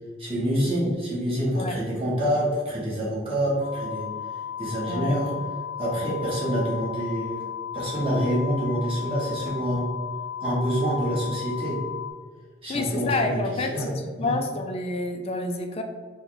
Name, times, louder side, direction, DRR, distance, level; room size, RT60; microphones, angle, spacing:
voice 1, 0.2-4.1 4.6-5.3 5.8-7.4 7.7-9.9 10.4-11.8 12.6-13.9 14.2-14.4, equal, 30° right, -7 dB, 1.3 m, -26 dB
sound 1, 3.6-12.1, left 9 dB, 90° left, 0.5 m, -35 dB
voice 2, 12.7-15.8, left 2 dB, 30° left, 5 dB, 0.3 m, -28 dB
4.2 x 2.2 x 4.0 m, 1.5 s
head